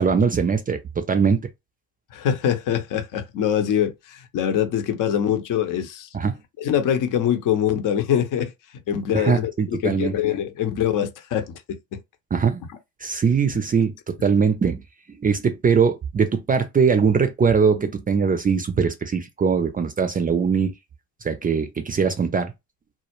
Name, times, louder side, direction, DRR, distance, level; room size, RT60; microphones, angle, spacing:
voice 1, 0.0-1.4 6.1-6.3 9.1-10.1 12.3-12.6 13.0-13.9 14.2-14.8 15.2-20.7 21.2-22.5, right 6 dB, 20° right, 0.5 m, -21 dB
voice 2, 2.1-6.1 6.6-8.5 8.9-12.0, left 9 dB, 55° left, 0.7 m, -24 dB
2.2 x 2.0 x 3.0 m
hypercardioid pair, 60°, 40 cm